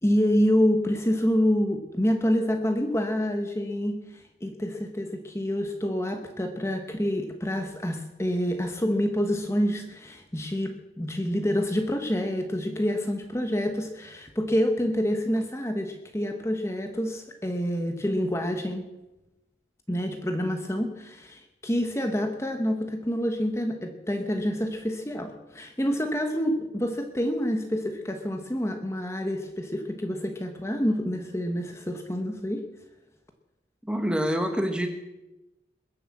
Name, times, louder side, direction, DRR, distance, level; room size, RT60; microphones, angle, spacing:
voice 1, 0.0-18.9 19.9-32.7, equal, 15° left, 5 dB, 1.1 m, -27 dB
voice 2, 33.9-34.9, equal, 5° right, 6 dB, 1.2 m, -26 dB
21.0 x 7.9 x 7.3 m, 1.0 s
head